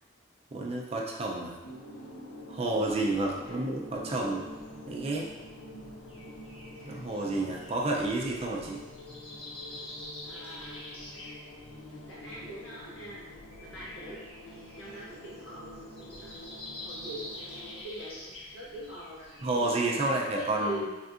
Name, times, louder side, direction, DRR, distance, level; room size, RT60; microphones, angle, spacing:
voice 1, 0.5-1.5 2.5-4.4 4.8-5.3 6.8-8.8 19.4-20.8, right 2 dB, 30° right, -1 dB, 0.4 m, -30 dB
sound 1, 1.6-17.8, left 1 dB, 75° left, 0.4 m, -47 dB
voice 2, 4.1-4.6 10.2-10.8 12.1-13.3 13.6-14.2 14.8-16.4 16.8-20.9, right 1 dB, 90° left, -7 dB, 1.2 m, -43 dB
Breathing, 4.2-19.7, left 1 dB, 30° left, 0.6 m, -48 dB
3.5 x 2.5 x 2.4 m, 1.2 s
head